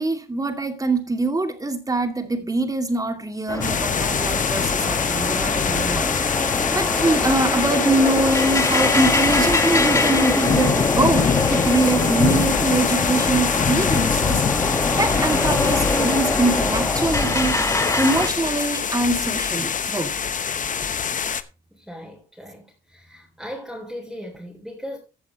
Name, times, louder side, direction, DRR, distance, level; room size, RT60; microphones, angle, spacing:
voice 1, 0.0-17.6 18.0-20.1, right 2 dB, 20° right, 2.5 m, -24 dB
sound 1, 3.5-18.3, left 2 dB, 15° left, 1.6 m, -24 dB
sound 2, 3.6-21.4, left 7 dB, 40° left, 0.9 m, -24 dB
voice 2, 21.7-25.0, equal, ahead, 3.6 m, -37 dB
15.0 x 8.1 x 3.1 m
cardioid pair, 90°, 20 cm